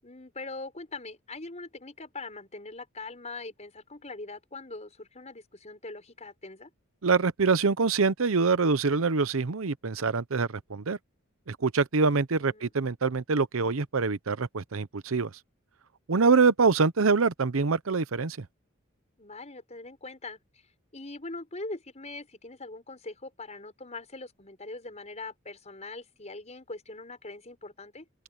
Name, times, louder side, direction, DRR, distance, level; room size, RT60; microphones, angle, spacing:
voice 1, 0.0-6.7 12.4-12.8 19.2-20.4 20.9-28.0, left 2 dB, 35° left, 5.8 m, -42 dB
voice 2, 7.0-11.0 11.5-15.3 16.1-18.5, right 4 dB, 75° right, 0.8 m, -25 dB
open air
head